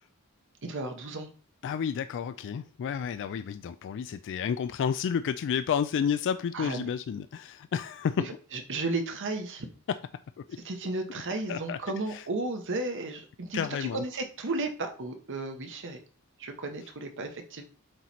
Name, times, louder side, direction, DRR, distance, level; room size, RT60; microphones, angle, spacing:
voice 1, 0.6-1.3 6.5-6.9 8.5-9.7 10.6-16.0 16.4-17.6, right 2 dB, 60° right, 1.0 m, -34 dB
voice 2, 1.6-8.2 9.9-10.0 10.5-10.6 11.1-11.2 11.5-11.8 12.1-12.3 13.5-14.0, left 7 dB, 55° left, 0.3 m, -31 dB
7.7 x 3.1 x 4.2 m
head